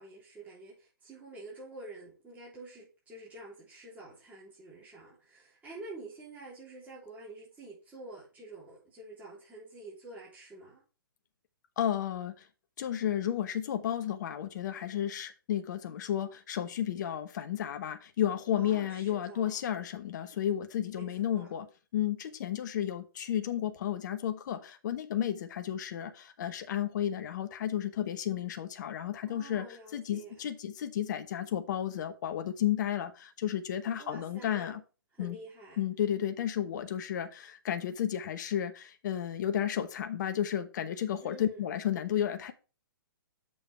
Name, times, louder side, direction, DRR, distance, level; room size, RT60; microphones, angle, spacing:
voice 1, 0.0-10.8 18.6-19.6 20.9-21.5 29.2-30.3 34.0-34.7 35.1-35.8 41.2-41.6, right 2 dB, 15° right, 3.5 m, -48 dB
voice 2, 11.8-12.5 12.8-21.7 21.9-34.8 35.2-35.4 35.8-42.5, left 10 dB, 55° left, 1.0 m, -32 dB
7.0 x 5.3 x 4.4 m
hypercardioid pair, 130°, 12 cm